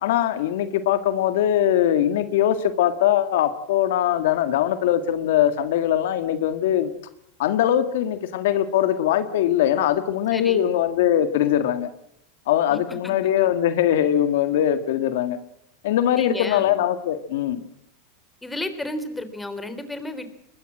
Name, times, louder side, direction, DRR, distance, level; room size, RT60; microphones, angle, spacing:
voice 1, 0.0-6.9 7.4-11.9 12.5-15.4 15.8-17.6, left 11 dB, 75° left, 10 dB, 1.8 m, -21 dB
voice 2, 10.3-10.6 12.7-13.0 16.1-16.7 18.4-20.3, left 1 dB, 10° left, 10 dB, 3.4 m, -32 dB
23.0 x 20.5 x 7.6 m, 0.76 s
hypercardioid pair, 115°, 0 cm